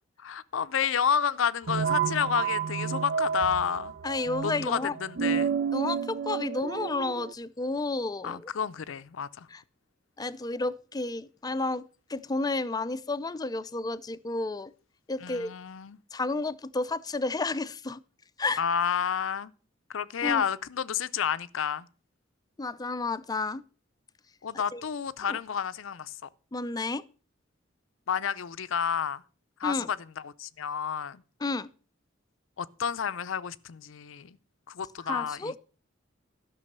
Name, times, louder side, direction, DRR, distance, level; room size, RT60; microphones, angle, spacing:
voice 1, 0.2-3.9 4.4-5.6 8.2-9.5 15.2-16.0 18.6-19.5 19.9-21.9 24.4-26.3 28.1-29.2 29.6-31.2 32.6-34.4 34.7-35.6, left 7 dB, 80° left, 0.5 m, -30 dB
sound 1, 1.7-7.3, right 7 dB, 55° right, 0.4 m, -30 dB
voice 2, 4.0-4.9 5.7-8.5 9.5-9.6 10.2-11.8 12.1-14.7 15.1-15.5 16.1-18.0 18.4-18.6 20.2-20.4 22.6-23.6 24.7-24.8 25.2-25.4 26.5-27.0 29.6-29.9 31.4-31.7 35.1-35.6, left 3 dB, 20° left, 0.5 m, -31 dB
12.0 x 6.2 x 6.7 m
head